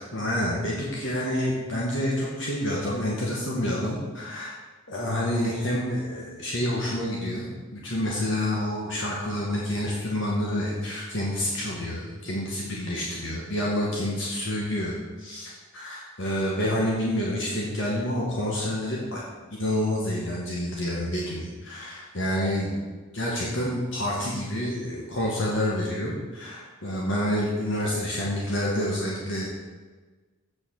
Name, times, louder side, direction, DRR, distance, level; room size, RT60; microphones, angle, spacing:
voice 1, 0.0-4.5 4.9-19.2 19.6-22.9 23.1-29.5, left 1 dB, 65° left, -4 dB, 2.0 m, -28 dB
8.5 x 6.6 x 6.7 m, 1.3 s
head